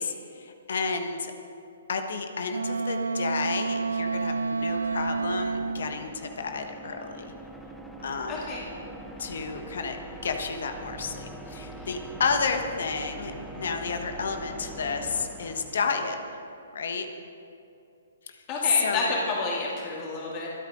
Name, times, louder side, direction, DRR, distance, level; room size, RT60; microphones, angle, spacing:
voice 1, 0.0-1.3 1.9-7.3 8.0-8.4 9.2-10.0 10.2-16.2 16.7-17.1 18.3-18.4 18.8-19.1, left 5 dB, 65° left, 6 dB, 1.3 m, -31 dB
Wind instrument woodwind instrument, 2.5-6.0, right 4 dB, 80° right, 0.3 m, -29 dB
sound 1, 3.4-16.5, right 2 dB, ahead, 0.9 m, -43 dB
voice 2, 8.3-8.6 18.5-20.5, left 3 dB, 35° left, -4 dB, 2.8 m, -30 dB
24.0 x 9.0 x 3.8 m, 2.6 s
figure-of-eight pair, 125°, 0 cm